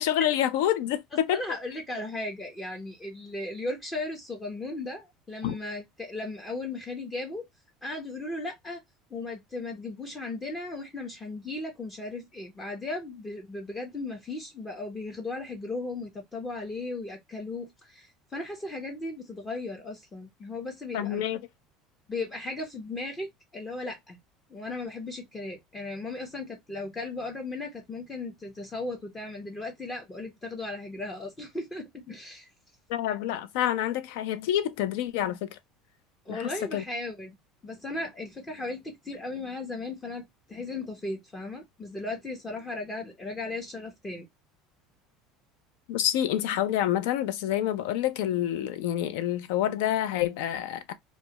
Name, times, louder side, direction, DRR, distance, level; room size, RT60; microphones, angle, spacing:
voice 1, 0.0-1.4 5.4-5.6 20.9-21.4 32.9-35.6 36.3-36.8 45.9-50.9, left 11 dB, 85° left, 0.4 m, -27 dB
voice 2, 1.3-7.4 7.8-8.8 9.1-21.2 22.1-24.2 24.5-32.5 36.3-37.4 37.6-44.3, left 2 dB, 15° left, 0.6 m, -36 dB
2.2 x 2.0 x 2.8 m
cardioid pair, 140°, 0 cm